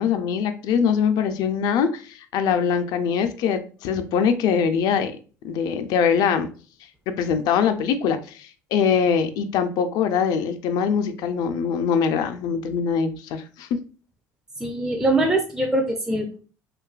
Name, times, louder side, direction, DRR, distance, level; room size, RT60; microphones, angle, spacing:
voice 1, 0.0-5.1 5.4-6.5 7.1-13.8, left 7 dB, 65° left, 8 dB, 0.4 m, -23 dB
voice 2, 14.6-16.4, right 1 dB, 10° right, 2 dB, 0.4 m, -23 dB
2.6 x 2.3 x 2.3 m, 0.38 s
supercardioid pair, 85°, 7 cm